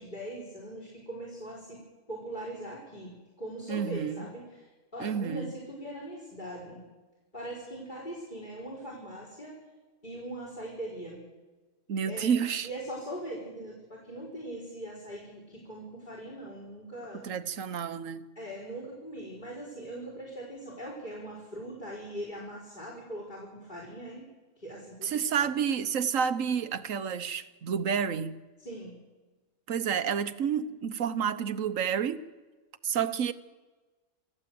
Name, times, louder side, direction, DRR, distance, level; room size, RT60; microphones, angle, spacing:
voice 1, 0.0-1.8 2.1-4.7 4.9-6.8 7.3-9.6 10.0-11.2 12.1-12.3 12.6-17.2 18.4-24.2 24.6-25.5 28.6-28.9, right 1 dB, 35° left, 4.3 m, -41 dB
voice 2, 3.7-4.3 5.0-5.5 11.9-12.7 17.2-18.3 25.0-28.4 29.7-32.2 32.8-33.3, right 7 dB, 65° right, 1.4 m, -30 dB
27.5 x 14.5 x 7.8 m
omnidirectional pair, 1.5 m